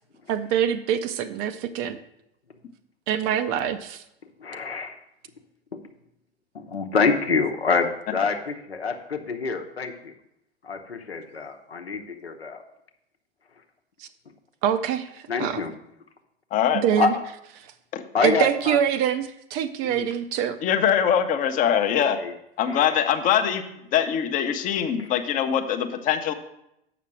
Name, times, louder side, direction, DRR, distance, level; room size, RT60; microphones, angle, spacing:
voice 1, 0.3-2.0 3.1-4.0 14.0-14.1 14.6-15.6 16.8-17.1 17.6-17.7 18.2-20.6, right 9 dB, 30° right, 11 dB, 0.4 m, -25 dB
voice 2, 4.4-5.0 6.5-10.1 10.6-12.6 15.3-15.7 17.0-17.1 18.1-18.8 19.8-20.1 22.2-22.3 22.7-22.9 25.0-25.1, left 4 dB, 80° left, 5 dB, 0.9 m, -26 dB
voice 3, 16.5-16.8 17.9-18.0 20.6-22.2 22.6-23.6 23.9-26.3, left 9 dB, 25° left, 8 dB, 0.7 m, -22 dB
7.3 x 5.9 x 6.0 m, 0.82 s
figure-of-eight pair, 90°, 31 cm